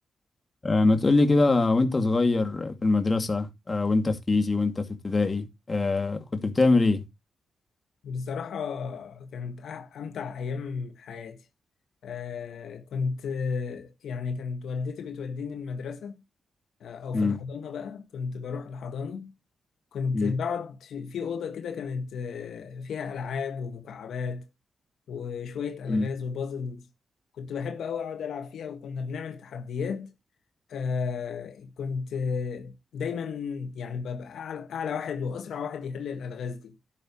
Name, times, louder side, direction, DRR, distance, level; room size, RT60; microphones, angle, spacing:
voice 1, 0.6-7.0 17.1-17.4 20.1-20.3 25.9-26.0, left 3 dB, 30° left, 2.3 m, -23 dB
voice 2, 8.0-11.4 12.0-16.2 16.8-19.3 19.9-24.4 25.1-26.8 27.3-30.1 30.7-36.8, left 5 dB, 85° left, 1.7 m, -33 dB
11.5 x 10.5 x 3.1 m
cardioid pair, 85°, 0 cm